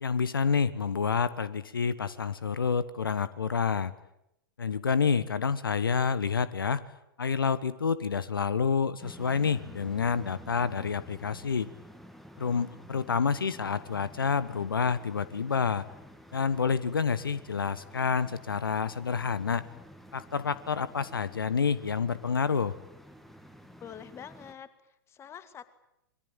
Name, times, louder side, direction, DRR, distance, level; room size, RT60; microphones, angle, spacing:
voice 1, 0.0-3.9 4.6-6.8 7.2-11.7 12.4-15.8 16.3-19.6 20.1-22.8, left 5 dB, 70° left, 17 dB, 1.2 m, -28 dB
sound 1, 9.0-24.5, equal, ahead, 2.2 m, -51 dB
voice 2, 23.8-25.7, left 8 dB, 20° left, 14 dB, 2.0 m, -46 dB
26.5 x 22.5 x 9.1 m, 0.81 s
figure-of-eight pair, 100°, 12 cm